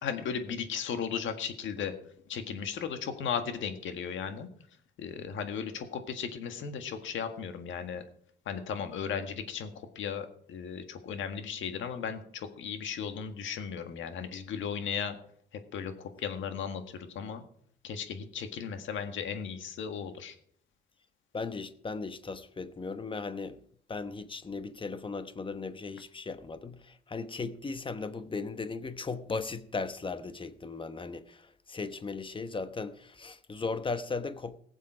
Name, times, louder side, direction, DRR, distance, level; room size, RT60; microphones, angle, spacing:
voice 1, 0.0-1.9 2.3-4.5 5.0-8.0 8.5-15.2 15.5-17.4 17.8-20.4, left 7 dB, 75° left, 1.7 m, -36 dB
voice 2, 21.3-23.6 23.9-34.6, left 4 dB, 25° left, 1.0 m, -37 dB
18.5 x 7.4 x 5.0 m
cardioid pair, 90°, 20 cm